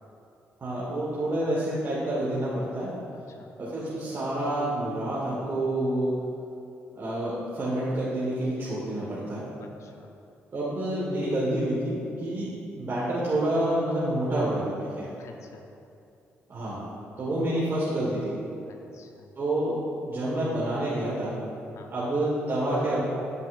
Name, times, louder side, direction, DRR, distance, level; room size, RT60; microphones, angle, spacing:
voice 1, 0.6-2.9 3.6-6.1 6.9-9.5 10.5-15.1 16.5-16.8 17.2-18.3 19.4-19.7 20.0-21.4 21.9-23.0, right 1 dB, 45° right, -8 dB, 1.4 m, -28 dB
voice 2, 3.1-3.5 9.6-10.2 12.4-12.5 15.2-15.7 18.7-19.3 21.7-21.9, left 5 dB, 65° left, 3 dB, 0.6 m, -51 dB
8.2 x 5.3 x 2.4 m, 2.7 s
supercardioid pair, 60°, 5 cm